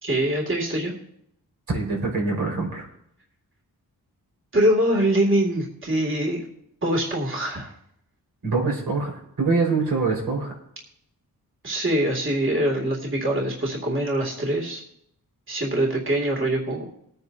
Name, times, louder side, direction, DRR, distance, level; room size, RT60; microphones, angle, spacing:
voice 1, 0.0-0.9 4.5-6.4 6.8-7.7 11.6-14.8 15.5-16.9, right 1 dB, 35° right, -1 dB, 2.3 m, -23 dB
voice 2, 1.7-2.8 8.4-10.5, right 4 dB, 80° right, -1 dB, 4.6 m, -24 dB
20.5 x 9.4 x 2.7 m, 0.74 s
wide cardioid pair, 100°, 36 cm